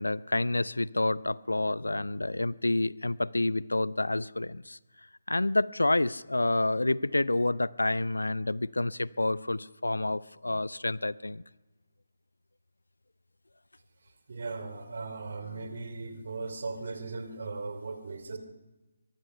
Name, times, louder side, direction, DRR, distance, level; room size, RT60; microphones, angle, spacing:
voice 1, 0.0-4.8 5.3-11.4 15.6-15.7, left 2 dB, 75° left, 21 dB, 0.6 m, -28 dB
voice 2, 14.3-18.4, right 3 dB, 50° right, 9 dB, 3.1 m, -38 dB
23.0 x 22.5 x 5.7 m, 1.1 s
figure-of-eight pair, 145°, 0 cm